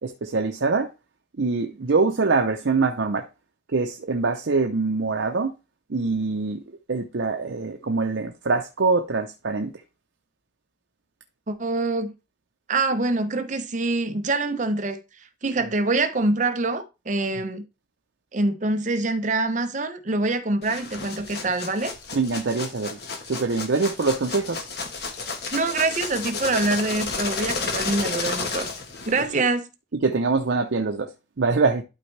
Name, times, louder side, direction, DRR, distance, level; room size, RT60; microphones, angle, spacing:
voice 1, 0.0-0.9 1.4-3.3 3.7-5.5 5.9-6.6 6.9-9.7 15.6-15.7 22.1-23.0 23.3-24.7 30.0-31.8, right 4 dB, 75° right, 0.7 m, -24 dB
voice 2, 11.5-12.1 12.7-15.0 15.4-17.6 18.3-21.9 25.5-28.7 29.1-29.7, right 2 dB, 40° right, 0.7 m, -25 dB
sound 1, 20.6-29.3, left 4 dB, 55° left, 1.3 m, -32 dB
11.5 x 4.4 x 3.3 m
head